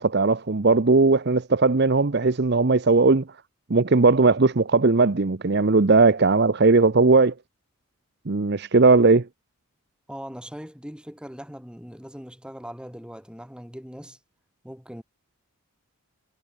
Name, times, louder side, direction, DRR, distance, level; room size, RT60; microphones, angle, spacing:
voice 1, 0.0-3.2 3.7-7.3 8.3-9.3, right 3 dB, 50° right, 0.7 m, -18 dB
voice 2, 10.1-14.2 14.6-15.0, equal, 5° right, 7.2 m, -40 dB
head